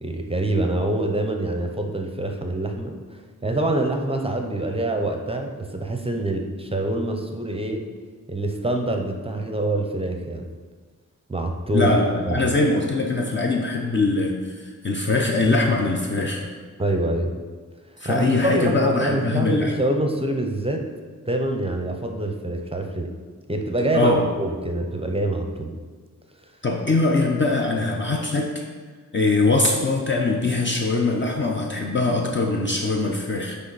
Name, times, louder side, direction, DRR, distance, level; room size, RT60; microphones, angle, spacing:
voice 1, 0.0-7.8 8.3-10.4 11.3-11.9 12.3-12.4 16.8-17.3 18.0-20.8 21.3-23.1 23.5-25.7, right 1 dB, 15° right, 3 dB, 0.6 m, -25 dB
voice 2, 11.7-16.4 18.0-19.7 23.9-24.3 26.6-28.6 29.1-33.6, left 3 dB, 35° left, 0 dB, 0.7 m, -22 dB
9.7 x 3.4 x 4.0 m, 1.5 s
wide cardioid pair, 90°, 33 cm